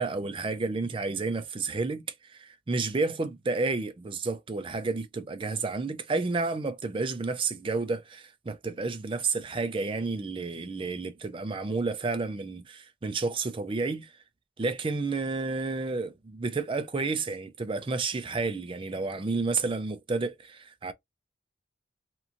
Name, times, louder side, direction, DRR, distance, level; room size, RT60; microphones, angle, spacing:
voice 1, 0.0-2.0 2.3-14.1 14.6-20.9, right 3 dB, 25° right, 0.4 m, -31 dB
2.9 x 2.5 x 2.4 m
head